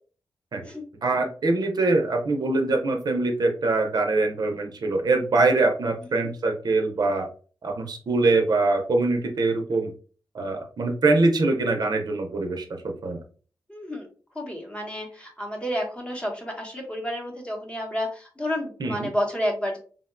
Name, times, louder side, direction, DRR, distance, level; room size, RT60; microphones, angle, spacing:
voice 1, 1.0-7.3 7.6-9.9 10.3-13.2 18.8-19.1, right 3 dB, 60° right, 3 dB, 0.6 m, -23 dB
voice 2, 13.7-14.1 14.3-19.8, equal, 15° left, 0 dB, 0.8 m, -30 dB
3.6 x 2.2 x 2.4 m, 0.40 s
wide cardioid pair, 130°, 8 cm